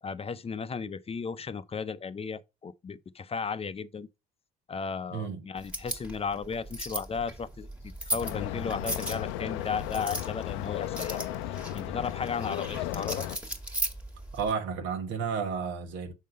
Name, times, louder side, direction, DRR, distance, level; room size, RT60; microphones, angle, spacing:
voice 1, 0.0-4.1 4.7-7.7 8.0-11.2 11.7-13.2, left 5 dB, 30° left, 0.6 m, -35 dB
voice 2, 5.1-5.4 14.3-16.1, right 6 dB, 80° right, 1.2 m, -32 dB
sound 1, 5.6-14.5, equal, 5° right, 1.6 m, -38 dB
sound 2, 8.2-13.4, left 13 dB, 85° left, 0.5 m, -35 dB
6.3 x 3.8 x 5.2 m
supercardioid pair, 70°, 19 cm